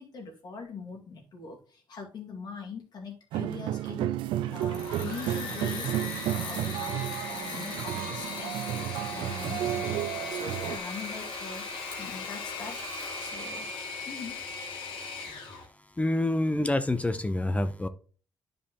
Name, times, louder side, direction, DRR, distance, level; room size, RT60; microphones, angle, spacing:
voice 1, 0.0-5.9 6.2-10.0 10.3-11.7 12.0-12.8 13.2-13.7 14.1-14.4, left 5 dB, 55° left, 1 dB, 2.3 m, -42 dB
sound 1, 3.3-10.8, right 13 dB, 80° right, 0.4 m, -32 dB
Engine / Mechanisms, 4.5-15.7, left 4 dB, 80° left, 2.0 m, -38 dB
voice 2, 16.0-17.9, left 1 dB, 15° left, 11 dB, 0.7 m, -27 dB
9.8 x 5.1 x 3.0 m, 0.39 s
supercardioid pair, 70°, 8 cm